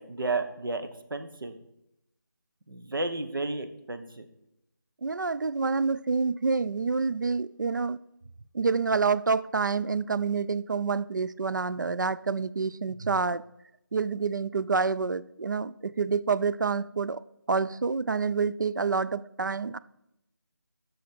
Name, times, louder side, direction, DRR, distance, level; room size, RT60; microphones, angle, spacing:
voice 1, 0.1-1.5 2.7-4.2, right 3 dB, 85° right, 1.2 m, -32 dB
voice 2, 5.0-8.0 8.5-13.4 13.9-17.2 17.5-19.8, right 4 dB, 60° right, 0.4 m, -27 dB
8.4 x 6.4 x 4.5 m
figure-of-eight pair, 175°, 11 cm